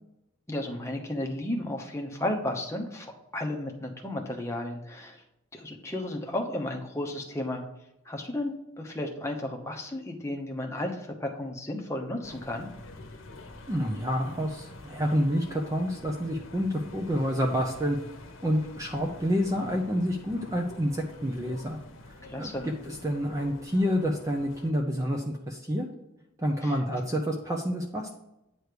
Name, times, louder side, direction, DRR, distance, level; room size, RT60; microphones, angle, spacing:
voice 1, 0.5-5.2 5.5-7.6 8.0-12.7 22.2-22.7 26.6-26.8, left 1 dB, 15° left, 2 dB, 0.9 m, -33 dB
sound 1, 12.2-24.7, left 2 dB, 70° left, 1.0 m, -47 dB
voice 2, 13.7-18.0 18.4-21.8 22.4-22.5 23.0-25.9 26.4-28.1, equal, 15° right, 1 dB, 0.6 m, -28 dB
9.3 x 3.2 x 6.7 m, 0.87 s
head